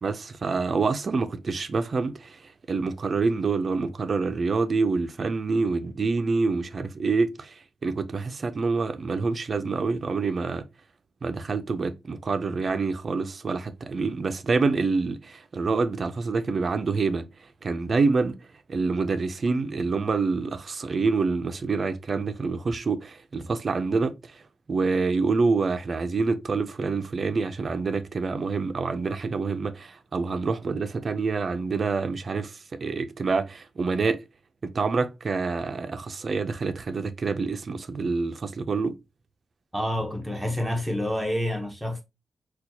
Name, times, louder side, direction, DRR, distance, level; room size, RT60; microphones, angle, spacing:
voice 1, 0.0-2.4 2.7-7.5 7.8-10.6 11.2-17.3 17.6-18.4 18.7-24.1 24.7-34.2 34.6-39.0, right 4 dB, 45° right, 0.4 m, -26 dB
voice 2, 39.7-42.0, left 1 dB, 5° right, 0.8 m, -28 dB
4.1 x 2.3 x 2.7 m
wide cardioid pair, 135°, 0 cm